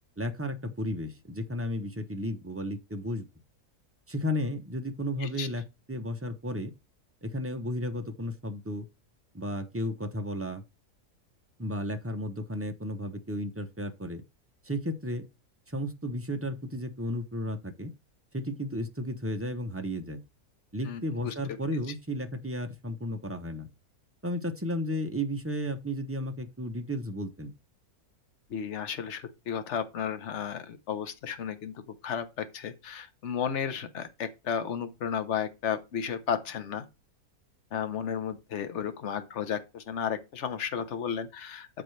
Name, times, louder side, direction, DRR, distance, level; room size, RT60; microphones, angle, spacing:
voice 1, 0.2-3.3 4.1-5.6 5.9-6.7 7.2-8.9 9.3-10.6 11.6-14.2 14.6-15.2 15.7-17.9 18.3-20.2 20.7-23.7 24.2-27.5, equal, 15° right, 0.5 m, -33 dB
voice 2, 20.9-21.3 28.5-36.9 37.7-41.8, left 8 dB, 50° left, 1.2 m, -33 dB
12.5 x 4.6 x 3.3 m
omnidirectional pair, 1.7 m